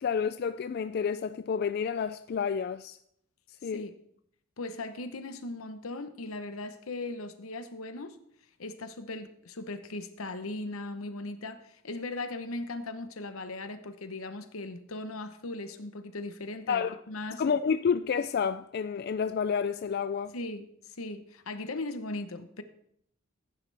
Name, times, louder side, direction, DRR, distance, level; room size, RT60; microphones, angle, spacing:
voice 1, 0.0-3.0 3.6-3.8 16.7-17.0 17.4-20.3, left 6 dB, 50° left, 0.3 m, -29 dB
voice 2, 3.6-4.0 4.6-8.2 8.6-17.4 20.3-22.6, left 2 dB, 85° left, 1.0 m, -38 dB
15.0 x 9.5 x 3.4 m
head